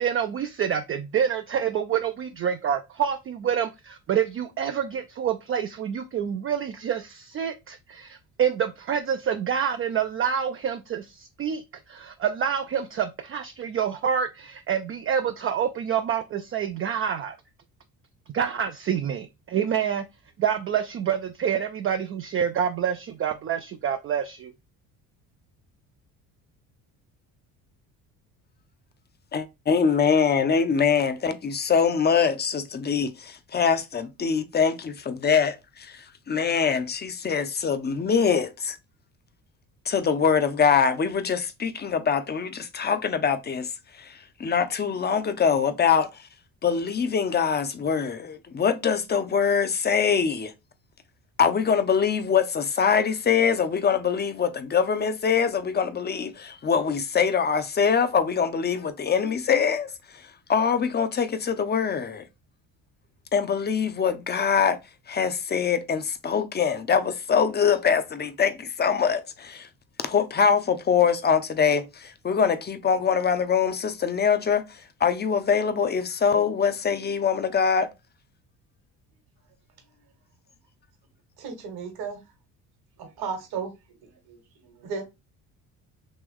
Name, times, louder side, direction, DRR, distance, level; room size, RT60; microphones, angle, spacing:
voice 1, 0.0-17.4 18.3-20.0 20.4-24.5, right 8 dB, 35° right, 0.4 m, -27 dB
voice 2, 29.3-38.8 39.9-43.7 44.0-46.2 46.6-50.5 51.4-62.3 63.3-64.8 65.1-69.7 70.0-77.9, left 6 dB, 25° left, 0.6 m, -24 dB
voice 3, 81.4-82.2 83.0-83.7 84.3-85.0, right 5 dB, 60° right, 1.2 m, -34 dB
3.1 x 2.9 x 3.6 m
hypercardioid pair, 60°, 42 cm